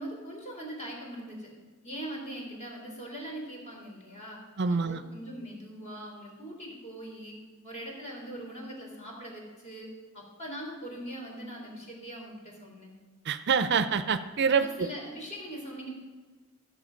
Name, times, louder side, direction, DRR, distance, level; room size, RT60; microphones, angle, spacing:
voice 1, 0.0-1.5 1.8-4.4 4.7-7.4 7.6-12.9 14.6-15.9, right 1 dB, 35° left, -2 dB, 3.5 m, -41 dB
voice 2, 4.6-5.0 13.3-14.9, right 5 dB, 55° right, 11 dB, 0.5 m, -26 dB
14.5 x 6.8 x 5.1 m, 1.4 s
head